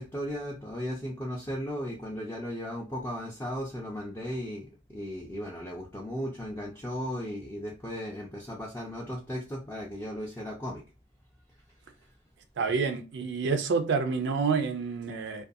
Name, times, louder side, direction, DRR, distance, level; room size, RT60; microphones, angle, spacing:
voice 1, 0.0-10.8, equal, 10° left, 0.4 m, -36 dB
voice 2, 12.6-15.5, right 5 dB, 60° right, 0.4 m, -28 dB
2.4 x 2.3 x 2.5 m
head